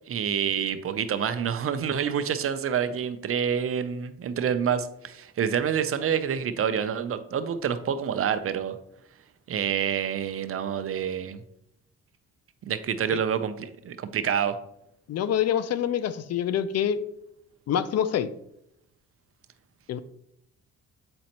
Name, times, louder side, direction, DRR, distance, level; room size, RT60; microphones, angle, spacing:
voice 1, 0.1-8.8 9.5-11.4 12.6-14.6, right 8 dB, 50° right, 10 dB, 0.6 m, -27 dB
voice 2, 15.1-17.0 17.7-18.3 19.9-20.0, left 9 dB, 55° left, 14 dB, 0.5 m, -26 dB
7.6 x 5.1 x 2.9 m, 0.78 s
cardioid pair, 90°, 30 cm